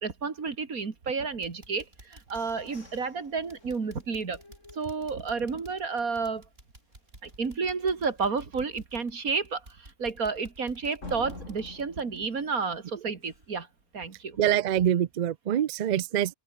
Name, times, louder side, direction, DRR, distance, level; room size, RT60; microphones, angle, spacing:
voice 1, 0.0-4.4 4.7-6.4 7.2-13.7 13.9-14.4, right 5 dB, 90° right, 2.8 m, -31 dB
sound 1, 0.8-1.1 1.4-13.0 13.3-13.5 13.9-14.0, right 2 dB, 45° right, 5.7 m, -53 dB
sound 2, 1.7-5.6 6.1-6.2 6.5-6.9 7.3-7.4 7.9-8.0 11.0-13.7, left 2 dB, 60° left, 4.9 m, -49 dB
voice 2, 14.4-16.3, right 10 dB, 70° right, 0.4 m, -25 dB
open air
omnidirectional pair, 1.5 m